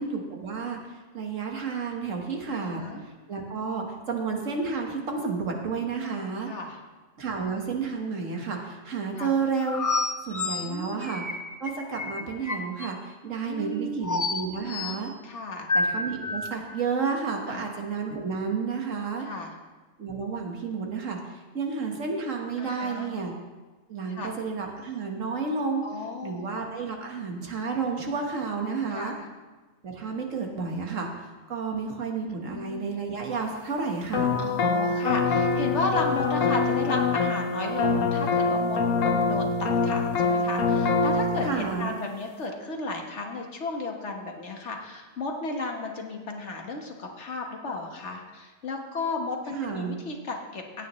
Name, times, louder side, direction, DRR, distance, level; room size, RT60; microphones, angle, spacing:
voice 1, 0.0-6.5 7.2-9.8 10.2-11.2 11.6-15.1 15.7-19.3 20.0-21.2 21.5-23.3 23.9-25.8 26.2-29.1 29.8-31.1 31.5-34.3 41.4-42.0 49.5-50.0, right 5 dB, 75° right, 1 dB, 1.8 m, -31 dB
voice 2, 2.5-3.0 6.0-6.8 9.2-9.3 10.6-11.0 13.4-14.0 15.2-15.7 17.5-17.6 19.2-19.5 22.6-23.1 24.1-24.3 25.8-26.5 28.9-29.1 30.5-30.6 32.3-32.9 34.4-50.9, left 3 dB, 60° left, 2 dB, 1.6 m, -34 dB
sound 1, 9.7-12.9 14.0-15.0 15.7-16.5, left 3 dB, 30° left, 0.3 m, -29 dB
sound 2, 34.1-41.5, left 4 dB, 80° left, 1.3 m, -24 dB
16.0 x 9.3 x 3.1 m, 1.2 s
omnidirectional pair, 1.3 m